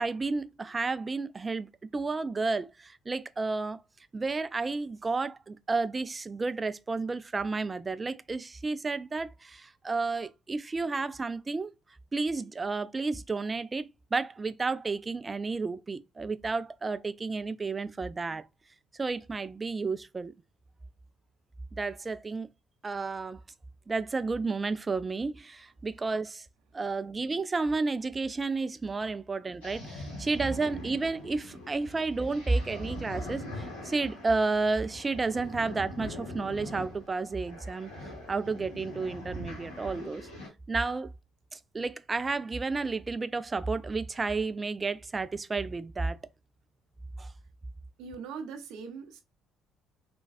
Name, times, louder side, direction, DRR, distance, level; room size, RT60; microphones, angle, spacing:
voice 1, 0.0-3.8 4.1-11.7 12.1-18.5 19.0-20.3 21.7-22.5 22.8-23.4 23.9-26.5 26.7-37.9 38.3-40.3 40.7-41.1 41.5-46.2 47.2-47.3, right 3 dB, 25° right, 0.3 m, -31 dB
sound 1, 29.6-40.5, left 1 dB, 75° left, 1.4 m, -42 dB
voice 2, 48.0-49.2, right 5 dB, 65° right, 0.6 m, -41 dB
3.3 x 2.2 x 2.4 m
hypercardioid pair, 50°, 0 cm